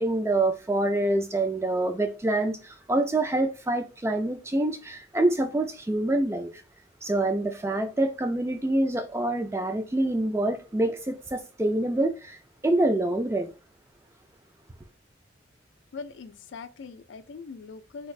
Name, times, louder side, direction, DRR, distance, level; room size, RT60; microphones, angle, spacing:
voice 1, 0.0-6.5 7.0-12.4 12.6-13.5, right 2 dB, 15° right, 0.3 m, -26 dB
voice 2, 15.9-18.1, left 4 dB, 75° left, 0.4 m, -41 dB
3.4 x 2.4 x 3.1 m
head